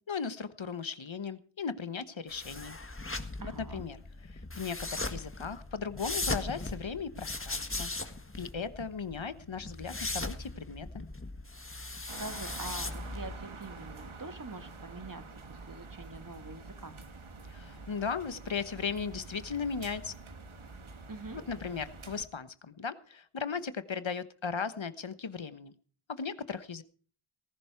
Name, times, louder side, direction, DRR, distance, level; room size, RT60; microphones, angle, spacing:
voice 1, 0.0-2.8 3.4-7.9 8.4-11.1 17.5-20.1 21.4-25.7 26.1-26.8, left 5 dB, 65° left, 13 dB, 1.2 m, -37 dB
sound 1, 2.3-13.4, left 2 dB, 25° left, 1.6 m, -39 dB
voice 2, 3.4-3.9 12.2-15.2 15.5-17.0 21.1-21.4, right 3 dB, 40° right, 10 dB, 1.6 m, -44 dB
sound 2, 12.1-22.2, right 3 dB, 70° right, 1.7 m, -47 dB
19.0 x 11.0 x 4.6 m, 0.42 s
wide cardioid pair, 45°, 50 cm